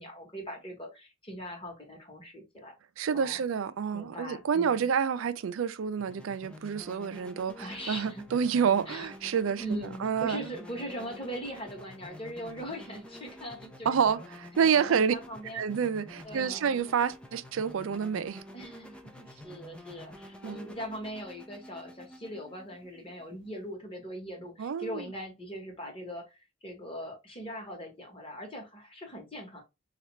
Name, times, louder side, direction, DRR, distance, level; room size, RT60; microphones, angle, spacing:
voice 1, 0.0-2.8 3.1-3.4 3.9-4.9 7.6-8.3 8.9-9.1 9.6-14.3 14.7-15.6 16.2-16.7 18.5-29.6, equal, 25° left, 1.0 m, -41 dB
voice 2, 3.0-10.5 13.9-15.2 15.5-18.4 20.4-20.6 24.6-25.0, right 7 dB, 80° right, 0.4 m, -28 dB
sound 1, 6.0-23.7, left 1 dB, 5° left, 0.3 m, -49 dB
4.2 x 2.4 x 3.0 m
head